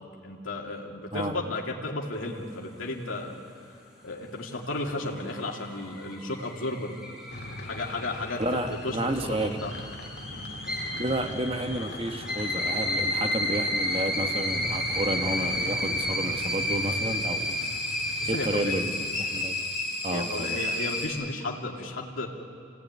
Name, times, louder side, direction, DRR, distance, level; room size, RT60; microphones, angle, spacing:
voice 1, 0.2-3.3 4.0-7.0 7.6-9.7 10.3-10.5 18.2-18.8 20.1-22.3, left 2 dB, 90° left, -1 dB, 2.8 m, -34 dB
sound 1, 4.8-21.1, left 1 dB, 5° right, 5.1 m, -32 dB
sound 2, 7.3-19.4, left 1 dB, 55° left, 2.1 m, -41 dB
voice 2, 8.4-9.6 11.0-17.6 18.3-19.6 20.0-20.6, right 1 dB, 30° right, 6 dB, 1.3 m, -31 dB
28.0 x 18.0 x 9.6 m, 2.3 s
head